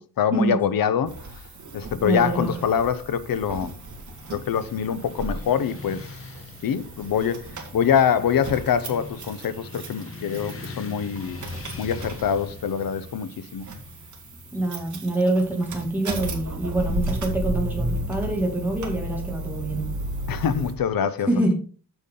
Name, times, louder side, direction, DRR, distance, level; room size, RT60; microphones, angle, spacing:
voice 1, 0.2-1.2 1.7-3.8 4.3-6.2 6.6-7.5 7.7-11.4 11.8-13.7 20.3-21.3, left 8 dB, 70° left, 0.8 m, -24 dB
sound 1, 1.0-20.7, right 2 dB, 55° right, 1.8 m, -35 dB
voice 2, 2.0-2.5 14.5-19.9 21.3-21.5, right 1 dB, 5° right, 2.5 m, -25 dB
Motorcycle / Traffic noise roadway noise, 3.8-17.9, left 3 dB, 40° left, 1.2 m, -43 dB
8.0 x 7.2 x 3.8 m
wide cardioid pair, 150°, 36 cm